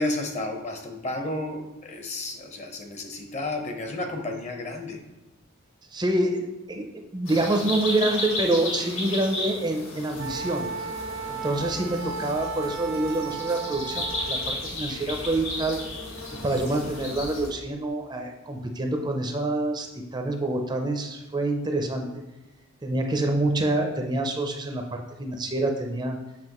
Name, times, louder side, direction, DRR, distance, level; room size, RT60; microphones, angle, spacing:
voice 1, 0.0-5.0, left 2 dB, 35° left, 4 dB, 0.8 m, -32 dB
voice 2, 5.9-10.7 11.3-15.8 16.4-22.1 22.8-26.2, right 2 dB, 20° right, 3 dB, 0.5 m, -27 dB
sound 1, 7.2-17.5, left 2 dB, 70° left, 1.9 m, -34 dB
Wind instrument woodwind instrument, 10.2-14.5, right 5 dB, 85° right, 0.5 m, -35 dB
7.6 x 5.7 x 3.0 m, 1.0 s
head